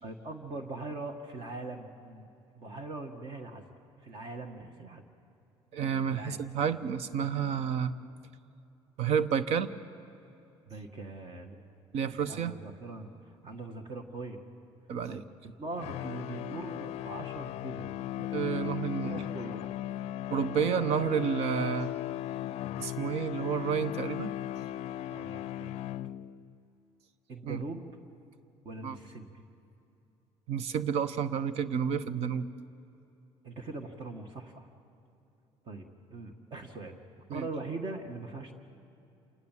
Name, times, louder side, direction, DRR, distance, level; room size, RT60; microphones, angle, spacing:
voice 1, 0.0-2.3 2.5-3.7 4.0-5.0 6.1-6.4 10.7-11.6 12.1-13.1 13.4-14.4 15.1-18.0 19.0-19.7 25.1-25.8 27.3-27.8 28.7-29.4 33.4-34.7 35.7-37.0 37.3-38.5, right 3 dB, 45° right, 6 dB, 1.8 m, -41 dB
voice 2, 5.7-7.9 9.0-9.7 11.9-12.5 14.9-15.2 18.2-19.2 20.3-21.9 22.8-24.3 27.4-27.6 28.8-29.0 30.5-32.5 37.3-37.5, right 7 dB, 65° right, 14 dB, 0.9 m, -30 dB
sound 1, 15.8-26.5, left 13 dB, 65° left, 0.4 m, -37 dB
27.5 x 19.0 x 7.5 m, 2.8 s
cardioid pair, 130°, 11 cm